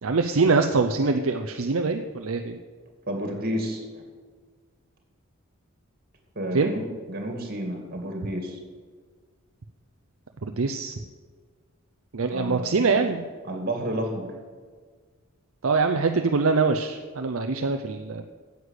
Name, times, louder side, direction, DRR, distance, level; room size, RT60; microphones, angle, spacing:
voice 1, 0.0-2.6 6.5-6.7 10.4-11.0 12.1-13.2 15.6-18.2, right 4 dB, 65° right, 6 dB, 0.6 m, -24 dB
voice 2, 3.1-3.8 6.4-8.6 12.3-13.1 13.4-14.3, right 1 dB, 45° right, 3 dB, 2.4 m, -31 dB
9.7 x 8.1 x 8.2 m, 1.5 s
head